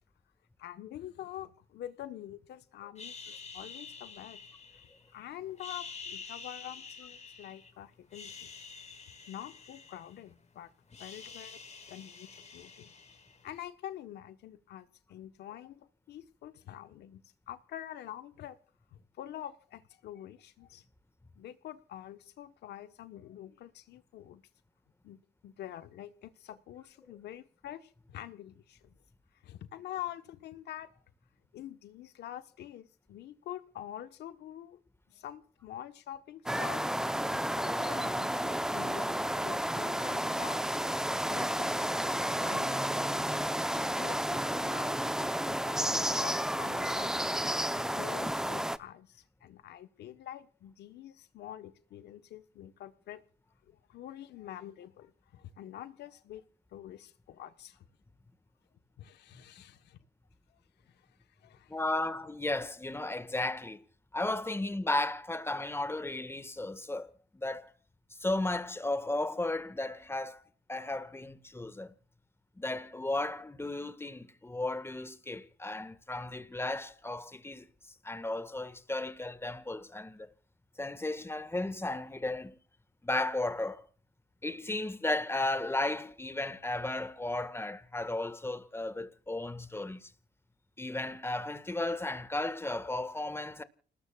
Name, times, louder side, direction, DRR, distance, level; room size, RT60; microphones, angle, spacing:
voice 1, 0.6-4.4 5.1-8.5 9.3-10.7 11.0-11.6 11.9-12.9 13.4-18.6 18.9-20.8 21.4-24.4 25.0-29.0 29.4-30.9 31.5-34.8 35.1-36.8 37.5-40.8 41.3-41.8 42.4-43.4 43.7-47.4 47.8-53.2 53.7-56.4 56.7-57.8 59.0-60.0 60.9-61.1 61.4-61.7, left 12 dB, 85° left, 1.2 m, -46 dB
sound 1, 3.0-5.1 5.5-7.7 8.0-10.4 10.7-13.6, left 5 dB, 40° left, 5.2 m, -48 dB
sound 2, 36.5-48.8, equal, 5° right, 0.8 m, -31 dB
voice 2, 61.7-63.8 64.1-67.7 68.2-70.4 70.7-71.9 72.6-77.6 78.0-80.3 80.8-82.6 83.0-83.9 84.4-90.1 90.8-93.6, left 2 dB, 15° left, 1.7 m, -34 dB
29.5 x 19.5 x 2.4 m
cardioid pair, 75°, 17 cm